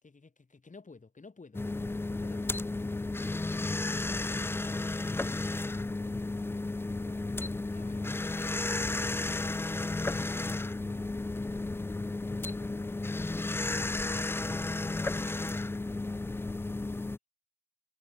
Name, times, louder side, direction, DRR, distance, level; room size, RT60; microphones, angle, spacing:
voice 1, 0.0-1.6 2.1-2.7 7.7-8.1 10.9-11.1, left 4 dB, 25° left, 4.8 m, -53 dB
sound 1, 1.5-17.2, left 2 dB, 10° left, 0.3 m, -33 dB
voice 2, 5.7-10.3 10.8-11.0, right 14 dB, 80° right, 6.4 m, -64 dB
cardioid pair, 90°, 30 cm